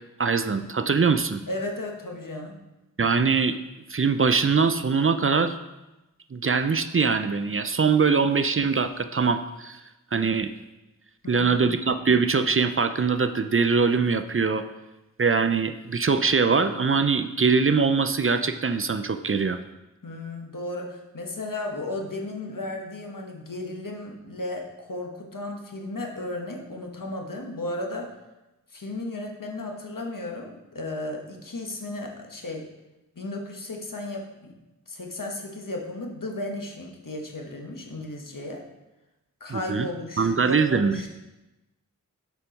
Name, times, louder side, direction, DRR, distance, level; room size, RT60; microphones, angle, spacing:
voice 1, 0.2-1.4 3.0-3.6 3.9-5.6 6.3-9.8 10.1-10.5 11.3-14.6 15.2-19.6 39.5-39.9 40.2-40.9, right 5 dB, 40° right, 10 dB, 0.4 m, -22 dB
voice 2, 1.5-2.6 11.2-11.7 20.0-28.1 28.7-32.7 33.2-34.5 34.9-38.6 39.4-41.2, left 2 dB, 75° left, 1 dB, 1.2 m, -34 dB
7.0 x 4.5 x 5.2 m, 1.0 s
wide cardioid pair, 45°, 33 cm